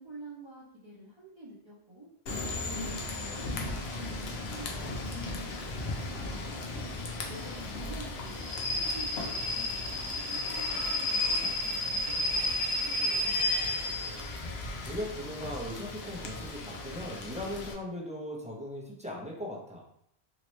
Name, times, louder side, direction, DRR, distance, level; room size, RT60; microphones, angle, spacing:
voice 1, 0.0-2.1 2.6-5.6 5.9-6.8 7.3-13.7, right 1 dB, 30° right, -9 dB, 0.8 m, -48 dB
Rain / Train, 2.3-17.7, left 2 dB, 75° left, 0.9 m, -33 dB
voice 2, 14.9-19.8, left 1 dB, 10° right, -4 dB, 0.5 m, -38 dB
2.9 x 2.8 x 3.0 m, 0.72 s
omnidirectional pair, 1.1 m